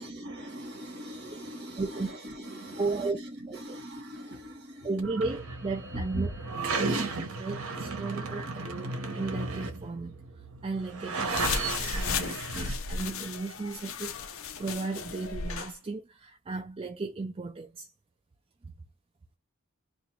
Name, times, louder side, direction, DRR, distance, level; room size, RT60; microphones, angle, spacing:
voice 1, 0.0-4.9 5.9-6.3 8.1-8.3, right 1 dB, 50° right, 1.5 m, -40 dB
voice 2, 1.8-2.1 2.8-3.2 3.5-3.6 4.8-6.3 6.8-10.2 10.6-17.9 18.6-18.7, right 3 dB, 25° right, 0.4 m, -35 dB
sound 1, 5.0-12.7, right 3 dB, 70° right, 0.8 m, -34 dB
sound 2, 11.3-15.7, left 5 dB, 65° left, 0.5 m, -34 dB
2.8 x 2.6 x 4.2 m
head